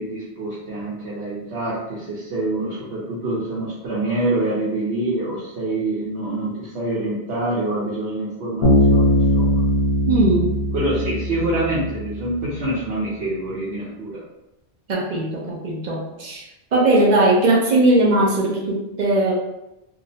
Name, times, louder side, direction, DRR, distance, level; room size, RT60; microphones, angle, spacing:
voice 1, 0.0-9.6 10.7-14.2, right 2 dB, 75° right, -8 dB, 1.0 m, -26 dB
Bass guitar, 8.6-12.3, equal, 80° left, 1.1 m, -19 dB
voice 2, 10.1-10.5 14.9-16.4 16.7-19.3, right 2 dB, 50° right, -4 dB, 0.6 m, -19 dB
2.7 x 2.0 x 2.7 m, 0.91 s
omnidirectional pair, 1.1 m